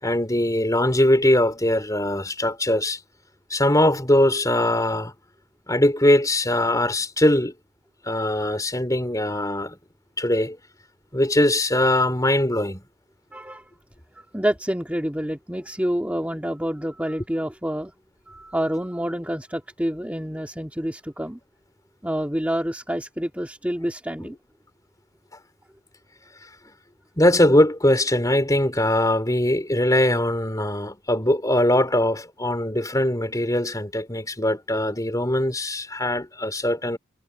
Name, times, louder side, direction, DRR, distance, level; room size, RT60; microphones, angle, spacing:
voice 1, 0.0-3.0 3.5-5.1 5.7-7.5 8.0-9.8 10.2-10.6 11.1-12.8 27.2-37.0, left 1 dB, 15° left, 4.7 m, -21 dB
voice 2, 13.3-13.7 14.1-17.9 18.3-21.4 22.0-24.4, equal, 5° right, 2.1 m, -28 dB
head